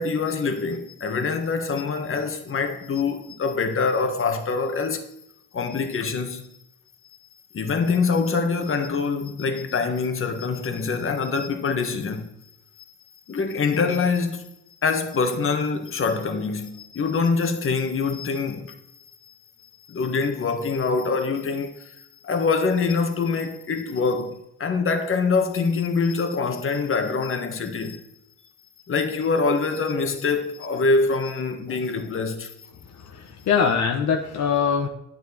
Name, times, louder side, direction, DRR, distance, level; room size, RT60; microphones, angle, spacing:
voice 1, 0.0-5.1 5.5-6.5 7.5-12.2 13.3-14.5 14.8-18.7 19.9-21.9 22.2-28.0 28.9-32.5, left 4 dB, 45° left, 1.6 m, -24 dB
voice 2, 32.9-34.9, left 6 dB, 65° left, 1.2 m, -23 dB
9.7 x 8.9 x 4.3 m
cardioid pair, 90°, 30 cm